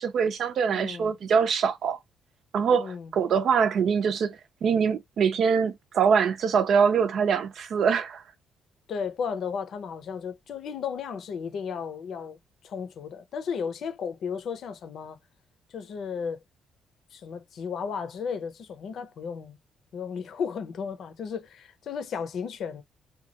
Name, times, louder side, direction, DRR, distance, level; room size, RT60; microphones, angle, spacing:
voice 1, 0.0-2.0 2.5-8.2, right 6 dB, 65° right, 0.6 m, -24 dB
voice 2, 0.7-1.1 2.8-3.1 8.9-12.4 12.6-15.2 15.7-16.4 17.1-19.6 19.9-22.8, left 6 dB, 65° left, 0.6 m, -34 dB
2.9 x 2.3 x 2.8 m
cardioid pair, 90°, 0 cm